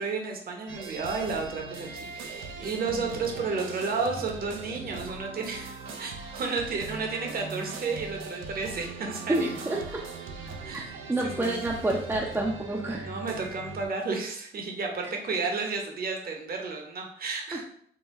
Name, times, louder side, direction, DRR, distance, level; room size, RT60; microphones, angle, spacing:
voice 1, 0.0-9.8 10.6-11.0 11.2-11.6 13.0-17.6, right 4 dB, 50° right, 1 dB, 1.0 m, -32 dB
sound 1, 0.7-13.9, right 4 dB, 80° right, 0.6 m, -40 dB
voice 2, 9.3-10.0 10.7-10.8 11.1-13.1 17.5-17.6, right 2 dB, 10° right, -2 dB, 0.6 m, -28 dB
3.9 x 2.2 x 4.1 m, 0.65 s
cardioid pair, 90°, 20 cm